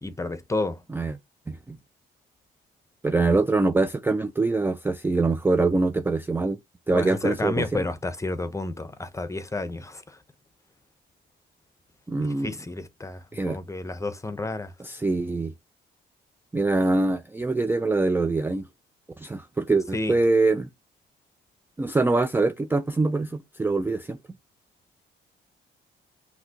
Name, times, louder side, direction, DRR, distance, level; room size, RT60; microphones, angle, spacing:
voice 1, 0.0-0.8 6.9-10.2 12.2-14.7 19.9-20.1, left 2 dB, 15° left, 0.8 m, -31 dB
voice 2, 1.5-1.8 3.0-6.6 6.9-7.8 12.1-12.5 13.3-13.6 14.8-15.5 16.5-18.7 19.2-20.7 21.8-24.2, right 3 dB, 10° right, 0.4 m, -24 dB
5.8 x 2.7 x 2.8 m
cardioid pair, 90°, 20 cm